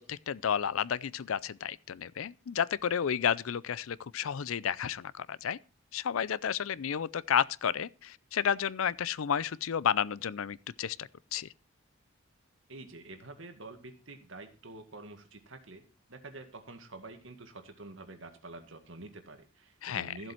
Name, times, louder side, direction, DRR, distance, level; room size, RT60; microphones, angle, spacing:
voice 1, 0.0-5.6 5.9-11.5 19.8-20.1, left 8 dB, 75° left, 0.5 m, -31 dB
voice 2, 12.7-15.8 16.1-20.3, right 2 dB, 65° right, 1.9 m, -47 dB
13.5 x 7.7 x 4.4 m
head